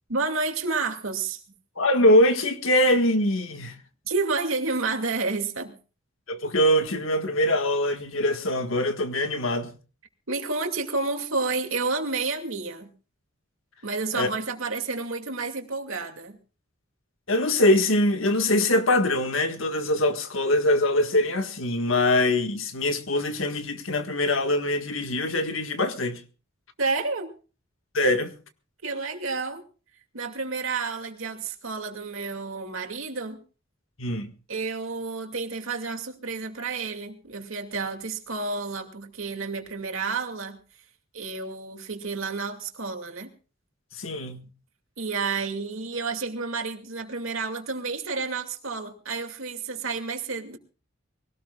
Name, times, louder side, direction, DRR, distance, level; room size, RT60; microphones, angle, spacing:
voice 1, 0.1-1.4 4.0-5.8 10.3-12.9 13.8-16.4 26.8-27.3 28.8-29.6 30.1-33.4 34.5-40.6 41.1-43.3 45.0-50.6, right 4 dB, 85° right, 2.5 m, -30 dB
voice 2, 1.8-3.8 6.3-9.7 14.1-14.3 17.3-26.2 27.9-28.4 34.0-34.3 43.9-44.5, left 1 dB, 80° left, 1.8 m, -23 dB
23.5 x 18.0 x 2.4 m
head